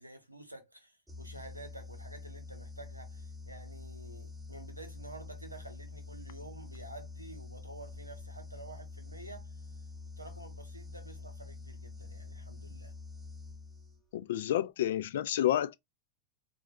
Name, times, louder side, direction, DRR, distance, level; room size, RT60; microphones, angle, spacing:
voice 1, 0.0-9.5 10.2-12.9, right 2 dB, 85° right, 0.8 m, -50 dB
sound 1, 1.1-14.2, left 3 dB, 5° right, 0.6 m, -46 dB
voice 2, 14.1-15.7, left 12 dB, 55° left, 0.4 m, -30 dB
4.0 x 2.3 x 2.7 m
figure-of-eight pair, 90°, 0 cm